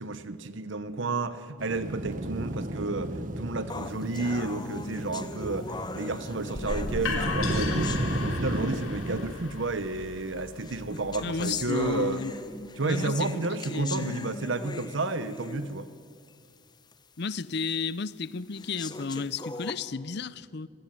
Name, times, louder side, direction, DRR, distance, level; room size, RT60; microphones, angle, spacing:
voice 1, 0.0-12.2 12.8-15.9, right 2 dB, 70° right, 1.0 m, -31 dB
sound 1, 1.6-9.3, right 1 dB, 40° right, 1.3 m, -33 dB
sound 2, 3.7-8.8 9.7-9.8 10.6-15.9 16.3-16.4 16.9-17.0 17.7-17.8 18.5-19.7, left 3 dB, 20° left, 1.1 m, -39 dB
sound 3, 6.5-12.3, left 3 dB, 90° left, 3.4 m, -36 dB
voice 2, 11.2-12.3 12.8-14.3 17.2-20.7, left 4 dB, 55° left, 0.6 m, -33 dB
25.5 x 19.0 x 9.5 m
head